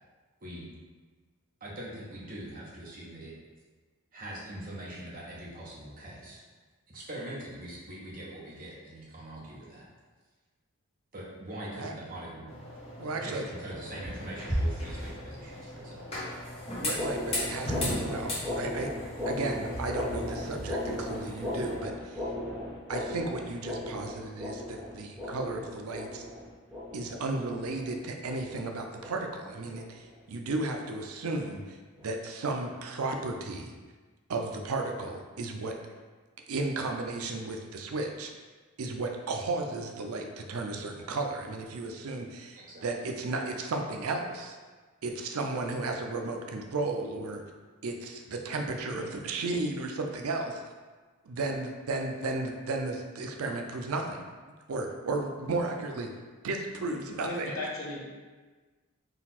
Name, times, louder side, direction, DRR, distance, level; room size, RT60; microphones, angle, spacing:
voice 1, 1.6-3.3 4.1-6.4 6.9-9.9 11.1-12.5 13.2-16.1 42.6-42.9, right 1 dB, 40° right, -5 dB, 0.9 m, -42 dB
sound 1, 12.5-21.7, equal, 30° left, 1.1 m, -36 dB
voice 2, 13.0-13.4 16.8-17.7 18.0-22.2 22.9-26.2 26.9-33.7 34.3-35.7 36.5-38.3 38.8-44.6 45.0-47.4 47.8-50.6 51.2-54.2 54.7-56.1 56.4-57.5, right 2 dB, 85° right, 3 dB, 0.5 m, -34 dB
sound 2, 16.7-29.4 29.7-30.1 30.5-30.8 31.2-31.4 32.0-32.1 32.7-32.8, left 1 dB, ahead, 0.9 m, -37 dB
voice 3, 57.2-58.1, left 1 dB, 65° left, -5 dB, 1.0 m, -35 dB
3.9 x 2.4 x 4.2 m, 1.4 s
head